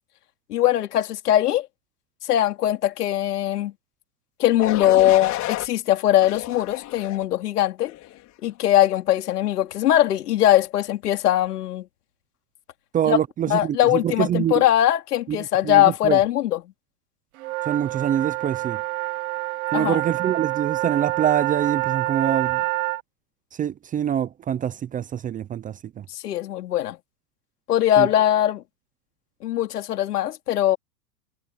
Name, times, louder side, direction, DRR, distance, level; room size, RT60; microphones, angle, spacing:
voice 1, 0.5-1.7 2.2-3.7 4.4-7.9 8.4-11.8 13.1-13.2 13.5-16.6 19.7-20.0 26.1-27.0 27.7-28.6 29.4-30.8, left 12 dB, 75° left, 3.1 m, -21 dB
sound 1, 4.6-5.7 6.2-7.2 7.8-8.2, left 15 dB, 35° left, 4.5 m, -31 dB
voice 2, 12.9-14.6 15.3-16.2 17.7-18.8 19.7-22.6 23.6-26.0 28.0-28.1, right 10 dB, 15° right, 0.7 m, -25 dB
sound 2, 17.4-23.0, right 18 dB, 60° right, 1.9 m, -27 dB
hypercardioid pair, 120°, 46 cm